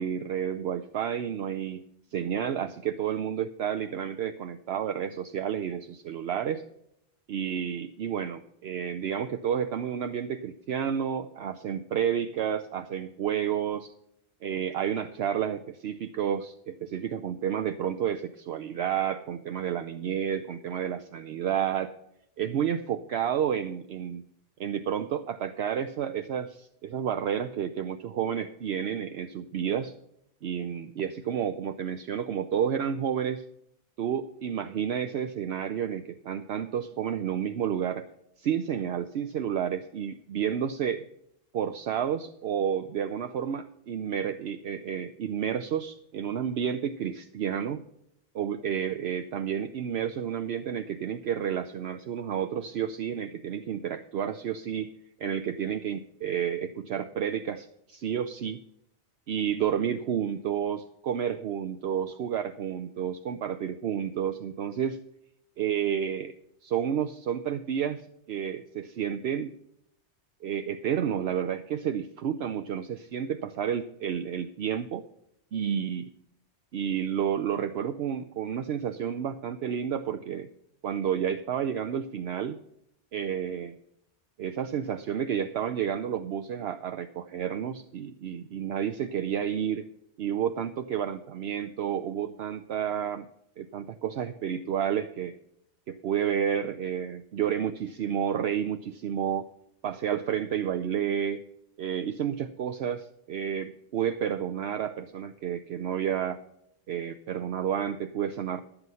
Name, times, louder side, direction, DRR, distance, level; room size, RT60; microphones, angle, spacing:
voice 1, 0.0-1.8 2.1-6.6 7.3-13.9 14.4-21.9 22.4-24.2 24.6-29.9 30.4-33.4 34.0-38.0 38.4-41.1 41.5-47.8 48.3-54.9 55.2-58.6 59.3-65.0 65.6-66.3 66.6-68.0 68.3-69.5 70.4-75.0 75.5-76.1 76.7-80.5 80.8-82.6 83.1-83.8 84.4-89.8 90.2-93.3 93.6-95.3 95.9-99.5 99.8-101.4 101.8-106.4 106.9-108.6, right 8 dB, 70° right, 9 dB, 0.9 m, -30 dB
12.5 x 8.0 x 5.5 m, 0.76 s
omnidirectional pair, 1.1 m